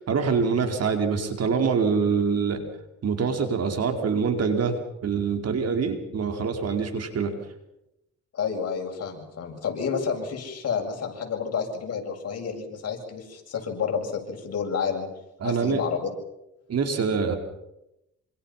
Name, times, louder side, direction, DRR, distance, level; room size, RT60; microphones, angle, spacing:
voice 1, 0.0-2.6 3.0-4.8 5.0-7.3 15.4-15.8 16.7-17.4, right 5 dB, 55° right, 4 dB, 4.8 m, -25 dB
voice 2, 8.3-15.1 15.4-16.1, left 6 dB, 55° left, 2 dB, 7.7 m, -30 dB
28.0 x 26.5 x 5.9 m, 0.88 s
cardioid pair, 90°, 30 cm